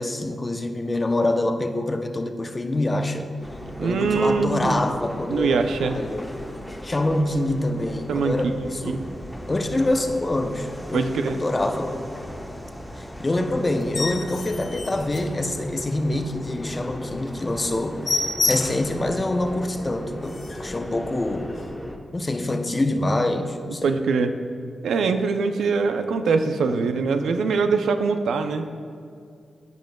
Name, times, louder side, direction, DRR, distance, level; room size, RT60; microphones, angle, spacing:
voice 1, 0.0-3.3 3.8-6.3 6.8-9.1 9.5-12.0 13.0-21.5 22.1-24.0, left 1 dB, 30° left, 6 dB, 0.6 m, -26 dB
sound 1, 3.4-22.0, equal, 5° left, 0.9 m, -37 dB
voice 2, 3.8-4.8 5.3-6.0 8.1-9.0 10.9-11.4 23.8-24.3 24.8-28.7, right 4 dB, 85° right, 8 dB, 0.4 m, -23 dB
sound 2, 13.8-15.9 16.4-16.5 16.9-17.0 17.3-17.4 17.7-19.0 19.5-19.6 19.9-20.0 20.2-20.7 21.5-21.7, left 3 dB, 55° left, 0.9 m, -29 dB
15.0 x 5.2 x 2.2 m, 2.3 s
cardioid pair, 50°, 0 cm